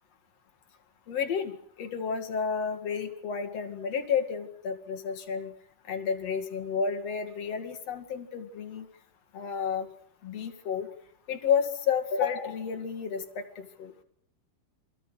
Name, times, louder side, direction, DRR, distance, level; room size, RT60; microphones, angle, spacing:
voice 1, 1.1-5.5 5.9-8.9 9.3-9.9 10.2-10.9 11.3-13.9, left 6 dB, 45° left, 6 dB, 2.3 m, -31 dB
29.0 x 22.5 x 6.5 m, 0.64 s
omnidirectional pair, 5.6 m